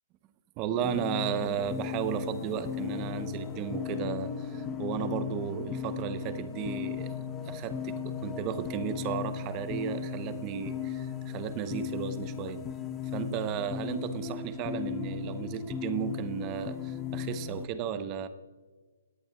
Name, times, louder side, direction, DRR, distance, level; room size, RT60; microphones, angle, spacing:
voice 1, 0.6-7.1 7.5-12.6 13.1-18.3, right 8 dB, 25° right, 12 dB, 0.8 m, -34 dB
sound 1, 0.8-17.7, left 7 dB, 15° left, 0.8 m, -36 dB
17.5 x 10.5 x 2.3 m, 1.3 s
hypercardioid pair, 145°, 0 cm